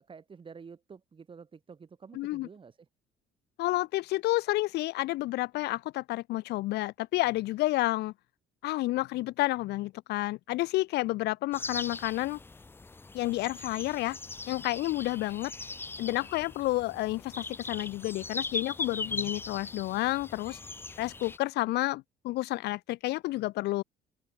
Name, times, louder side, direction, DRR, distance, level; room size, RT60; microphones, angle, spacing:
voice 1, 0.0-2.9, right 5 dB, 30° right, 2.9 m, -49 dB
voice 2, 2.2-2.5 3.6-8.1 8.6-12.4 13.1-14.2 14.5-15.5 16.0-20.6 21.0-23.8, left 18 dB, 80° left, 0.9 m, -30 dB
sound 1, 11.5-21.4, left 3 dB, 15° left, 0.5 m, -40 dB
open air
cardioid pair, 110°, 17 cm